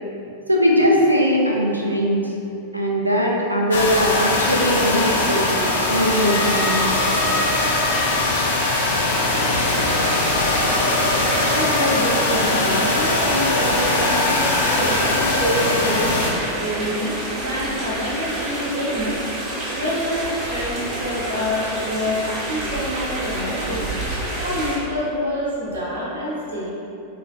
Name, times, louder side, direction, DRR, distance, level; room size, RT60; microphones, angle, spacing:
voice 1, 0.5-2.2 2.7-5.5 5.9-6.8, equal, 85° right, -2 dB, 0.3 m, -19 dB
sound 1, 3.7-16.3, left 2 dB, 60° left, 0.4 m, -21 dB
sound 2, 6.1-11.7, left 1 dB, 30° left, 1.2 m, -34 dB
voice 2, 8.9-9.8 11.5-26.7, equal, 65° right, -6 dB, 0.8 m, -27 dB
sound 3, 9.1-24.8, right 1 dB, 30° right, 1.2 m, -29 dB
3.1 x 2.9 x 2.6 m, 2.7 s
figure-of-eight pair, 90°, 0 cm